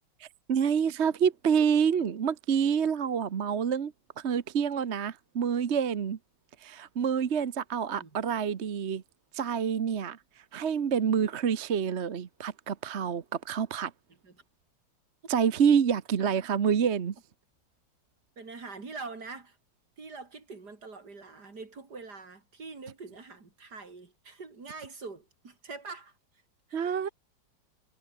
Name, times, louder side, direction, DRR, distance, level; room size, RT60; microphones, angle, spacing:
voice 1, 0.2-6.2 6.6-9.0 9.3-13.9 15.3-17.1 26.7-27.1, right 7 dB, 45° right, 1.1 m, -27 dB
voice 2, 18.4-19.6 20.0-26.1 26.7-27.1, right 4 dB, 60° right, 4.0 m, -44 dB
omnidirectional pair, 2.0 m